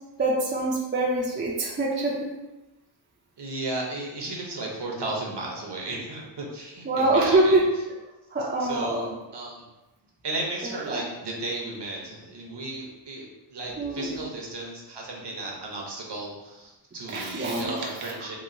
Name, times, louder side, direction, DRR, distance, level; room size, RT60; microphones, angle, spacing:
voice 1, 0.2-2.3 6.9-7.7 8.3-9.1 10.6-11.0 13.8-14.2 17.1-17.7 18.0-18.1, right 2 dB, 25° right, -2 dB, 0.4 m, -24 dB
voice 2, 3.4-7.6 8.6-9.7 10.2-18.4, right 2 dB, 55° right, -2 dB, 0.7 m, -34 dB
2.9 x 2.1 x 2.6 m, 1.0 s
wide cardioid pair, 75°, 48 cm